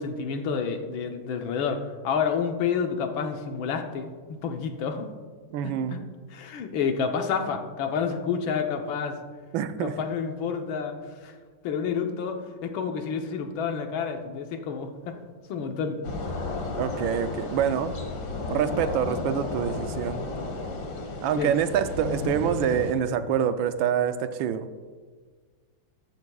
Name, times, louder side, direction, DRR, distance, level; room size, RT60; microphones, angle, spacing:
voice 1, 0.0-5.1 5.6-6.0 6.3-9.2 9.8-11.3 11.6-15.2 15.5-16.0 21.4-21.5, left 6 dB, 80° left, 5 dB, 1.7 m, -29 dB
voice 2, 5.5-6.0 9.5-10.0 16.8-17.9 18.5-20.2 21.2-24.7, right 9 dB, 80° right, 10 dB, 1.3 m, -26 dB
sound 1, 16.0-22.9, left 3 dB, 60° left, 1.9 m, -33 dB
14.0 x 12.5 x 2.3 m, 1.5 s
omnidirectional pair, 2.2 m